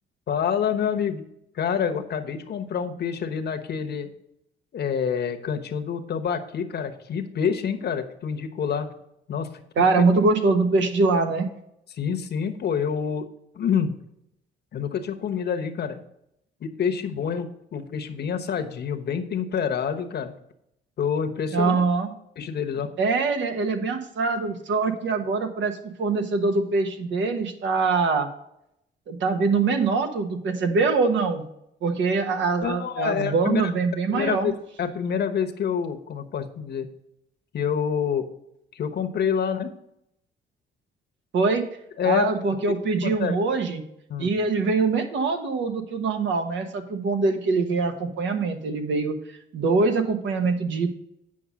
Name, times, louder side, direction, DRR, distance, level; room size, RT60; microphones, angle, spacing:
voice 1, 0.3-1.2 1.5-4.1 4.7-8.9 9.3-9.5 9.8-9.9 12.0-13.2 13.5-13.9 14.7-16.0 16.6-20.3 21.0-21.8 22.4-22.9 32.6-33.6 34.1-36.9 37.5-38.3 38.7-39.7 42.0-42.4 43.0-43.4 44.1-44.3, left 7 dB, 55° left, 7 dB, 1.0 m, -27 dB
voice 2, 9.8-11.5 21.5-22.1 23.0-28.3 29.1-31.4 31.8-34.5 41.3-41.6 42.0-43.8 44.2-50.9, right 4 dB, 70° right, 6 dB, 1.2 m, -23 dB
8.5 x 5.2 x 5.0 m, 0.78 s
cardioid pair, 90°, 20 cm